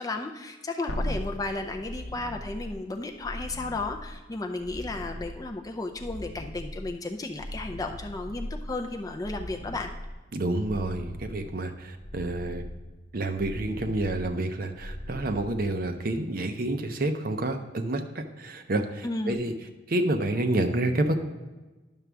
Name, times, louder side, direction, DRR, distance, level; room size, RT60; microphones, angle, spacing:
voice 1, 0.0-9.9 19.0-19.5, left 2 dB, 20° left, 3 dB, 0.4 m, -34 dB
sound 1, 0.9-16.2 19.3-19.4, left 1 dB, 75° left, 0.7 m, -39 dB
voice 2, 10.3-12.6 13.1-19.5 19.9-21.1, right 2 dB, 45° right, 7 dB, 0.6 m, -29 dB
10.5 x 6.0 x 3.4 m, 1.2 s
head